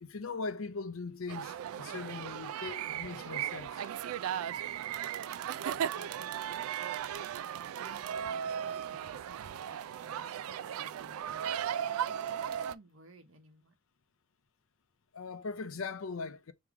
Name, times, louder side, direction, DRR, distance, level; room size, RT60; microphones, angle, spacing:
voice 1, 0.0-3.9 15.1-16.5, left 4 dB, 75° left, 0.6 m, -40 dB
sound 1, 1.3-12.8, right 9 dB, 90° right, 0.3 m, -36 dB
voice 2, 5.9-6.7 7.8-11.5 12.1-13.8, right 2 dB, 70° right, 1.1 m, -56 dB
3.6 x 3.0 x 4.7 m
head